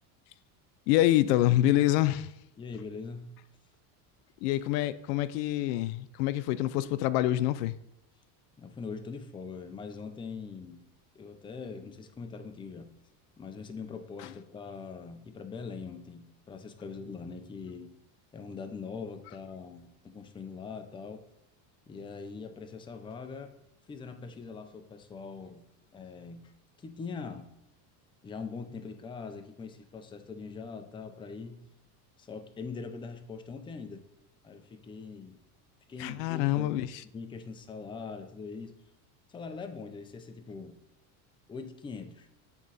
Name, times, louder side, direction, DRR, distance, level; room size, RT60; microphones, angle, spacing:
voice 1, 0.9-2.3 4.4-7.8 36.0-36.9, left 14 dB, 85° left, 15 dB, 0.6 m, -26 dB
voice 2, 2.6-3.4 8.6-10.8 11.1-12.9 13.4-17.9 18.3-21.2 21.9-23.5 23.9-25.6 25.9-26.5 26.8-27.5 28.2-31.6 32.2-34.0 34.4-35.4 35.9-36.9 37.1-38.8 39.3-40.8 41.5-42.3, left 5 dB, 10° left, 7 dB, 0.4 m, -42 dB
8.4 x 3.8 x 4.0 m, 0.84 s
supercardioid pair, 125°, 46 cm